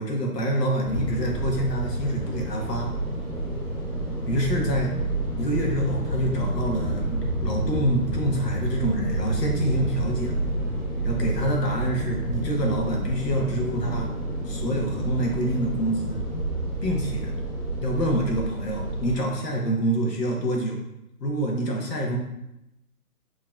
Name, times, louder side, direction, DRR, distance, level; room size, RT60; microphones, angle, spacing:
voice 1, 0.0-2.9 4.3-4.9 5.4-10.3 11.0-14.1 14.4-16.2 16.8-17.3 17.8-20.8 21.2-22.2, right 1 dB, 90° left, 0 dB, 1.2 m, -26 dB
sound 1, 0.8-19.1, right 1 dB, 30° left, 1.2 m, -29 dB
4.8 x 3.1 x 2.3 m, 0.89 s
hypercardioid pair, 170°, 47 cm